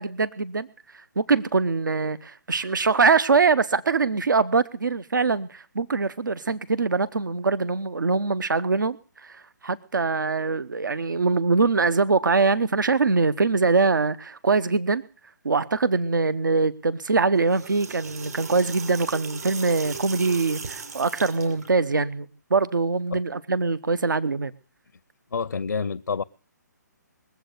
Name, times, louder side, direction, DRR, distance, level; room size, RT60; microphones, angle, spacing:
voice 1, 0.0-15.0 15.4-24.5, right 4 dB, 85° right, 0.8 m, -23 dB
sound 1, 17.3-21.7, right 5 dB, 60° right, 5.5 m, -38 dB
voice 2, 25.3-26.2, left 5 dB, 85° left, 0.7 m, -28 dB
22.0 x 8.0 x 6.5 m
hypercardioid pair, 150°, 10 cm